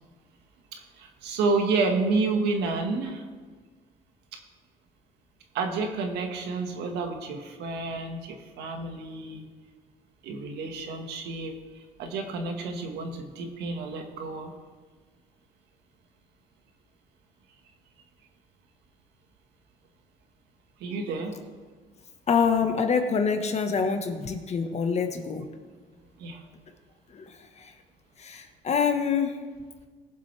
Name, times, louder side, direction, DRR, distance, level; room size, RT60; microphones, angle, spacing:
voice 1, 0.7-3.2 5.5-9.4 10.2-14.5 20.8-21.3 26.2-26.4, right 3 dB, 85° right, 4 dB, 1.7 m, -30 dB
voice 2, 22.3-25.5 27.1-27.7 28.2-29.4, left 6 dB, 40° left, 6 dB, 1.4 m, -26 dB
20.0 x 7.6 x 3.4 m, 1.5 s
cardioid pair, 110°, 17 cm